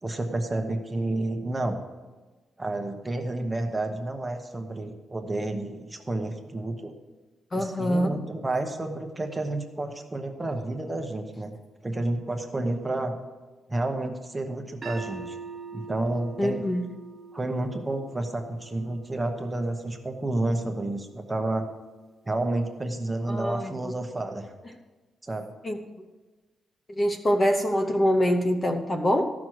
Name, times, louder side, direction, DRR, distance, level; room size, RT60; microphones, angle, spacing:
voice 1, 0.0-1.8 2.6-6.9 7.5-13.2 13.7-15.3 15.7-16.6 17.3-21.7 22.3-24.5 25.2-25.5, right 2 dB, 15° right, 4 dB, 1.0 m, -30 dB
voice 2, 7.5-8.2 16.4-16.8 23.3-23.9 25.6-25.8 26.9-29.3, equal, 25° left, 4 dB, 0.8 m, -24 dB
sound 1, 14.8-21.0, right 5 dB, 35° right, 1.1 m, -44 dB
14.0 x 6.1 x 6.3 m, 1.2 s
cardioid pair, 140°, 0 cm